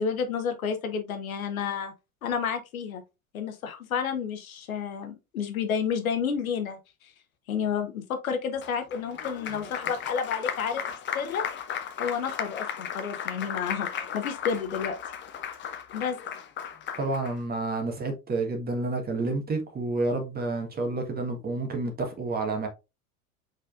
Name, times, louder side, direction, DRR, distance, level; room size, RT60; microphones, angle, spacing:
voice 1, 0.0-1.9 2.2-3.0 3.3-6.8 7.5-10.9 11.1-11.4 12.0-13.9 14.1-15.0 15.9-16.2, left 6 dB, 70° left, 1.0 m, -30 dB
Applause, 8.6-17.3, left 8 dB, 25° left, 0.7 m, -35 dB
voice 2, 16.9-22.7, right 3 dB, 20° right, 1.4 m, -29 dB
5.1 x 4.2 x 2.5 m
figure-of-eight pair, 75°, 43 cm